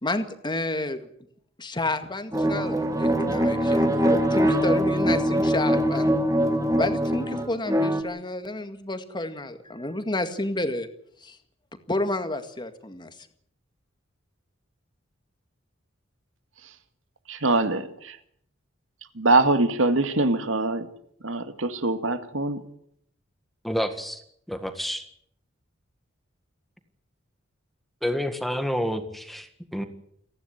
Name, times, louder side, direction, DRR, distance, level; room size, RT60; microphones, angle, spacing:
voice 1, 0.0-1.1 1.6-6.2 6.8-10.9 11.2-11.4 11.9-13.1, left 2 dB, 25° left, 9 dB, 2.0 m, -30 dB
sound 1, 2.3-8.0, equal, 15° right, 2.4 m, -23 dB
voice 2, 17.3-17.9 19.2-20.9 21.2-22.6, right 2 dB, 75° right, 9 dB, 2.2 m, -23 dB
voice 3, 23.6-24.2 24.5-25.0 28.0-29.8, equal, ahead, 8 dB, 1.8 m, -29 dB
29.0 x 11.0 x 9.8 m, 0.68 s
head